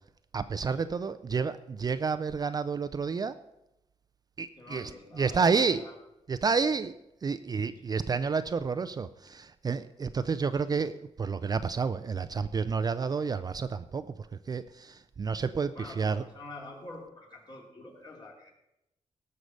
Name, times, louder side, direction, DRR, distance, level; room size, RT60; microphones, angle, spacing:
voice 1, 0.3-3.4 4.4-4.9 5.2-5.8 6.3-7.0 7.2-14.1 14.5-16.2, right 5 dB, 35° right, 12 dB, 0.4 m, -30 dB
voice 2, 4.6-6.0 6.7-6.8 7.7-7.9 10.5-10.6 15.7-18.5, left 2 dB, 35° left, 0 dB, 2.8 m, -46 dB
18.0 x 6.5 x 5.4 m, 0.88 s
wide cardioid pair, 160°, 12 cm